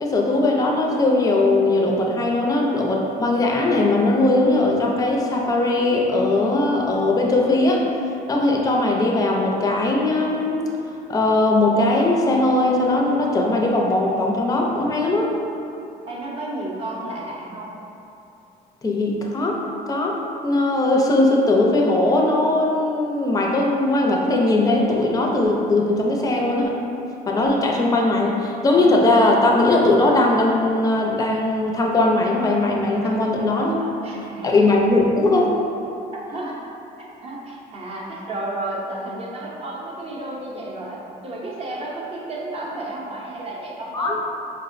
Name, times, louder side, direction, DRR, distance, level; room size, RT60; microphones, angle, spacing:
voice 1, 0.0-7.8 8.3-10.6 11.1-15.3 18.8-26.8 27.3-33.7 34.4-35.5 43.9-44.2, left 2 dB, 20° left, -1 dB, 0.4 m, -19 dB
voice 2, 16.1-17.7 33.0-34.6 36.1-36.6 37.2-44.2, right 2 dB, 35° right, -3 dB, 0.6 m, -32 dB
4.2 x 2.0 x 2.5 m, 2.8 s
cardioid pair, 110°, 17 cm